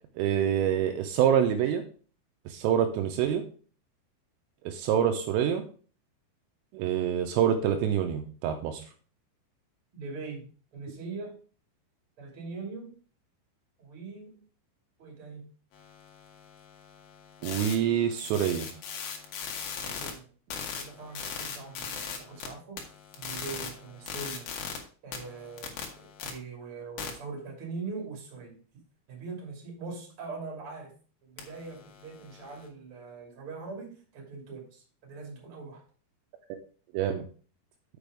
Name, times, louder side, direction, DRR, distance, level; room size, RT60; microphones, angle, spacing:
voice 1, 0.2-1.8 2.5-3.4 4.7-5.6 6.7-8.8 17.4-18.7 36.5-36.6 36.9-37.3, right 9 dB, 80° right, 5 dB, 3.1 m, -26 dB
voice 2, 9.9-11.3 12.2-13.0 13.8-14.4 15.0-15.5 19.8-20.3 20.6-22.8 23.2-24.5 25.0-28.6 29.1-30.9 31.2-35.8, right 4 dB, 35° right, 0 dB, 2.4 m, -42 dB
sound 1, 15.7-20.1 20.5-22.5 22.8-24.8 25.1-26.3 27.0-27.1 31.4-32.7, left 7 dB, 70° left, 2.4 m, -40 dB
6.8 x 6.2 x 4.8 m, 0.41 s
omnidirectional pair, 6.0 m